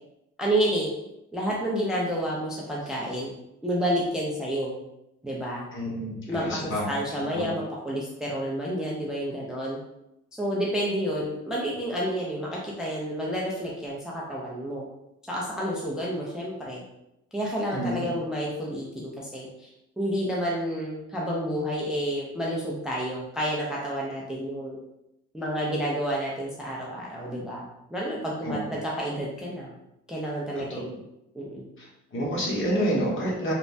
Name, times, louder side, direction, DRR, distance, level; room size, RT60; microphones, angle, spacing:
voice 1, 0.4-0.9 1.3-3.3 3.6-4.8 5.2-5.7 6.3-9.8 10.4-14.9 15.3-16.8 17.3-19.7 20.0-24.8 25.3-29.7 30.1-31.0 31.3-31.7, equal, ahead, -4 dB, 0.5 m, -30 dB
voice 2, 5.7-6.9 7.3-7.4 17.7-18.0 28.4-28.5 30.7-30.8 31.8-33.5, equal, 40° left, -4 dB, 1.1 m, -28 dB
3.1 x 2.1 x 2.6 m, 0.86 s
cardioid pair, 90°, 30 cm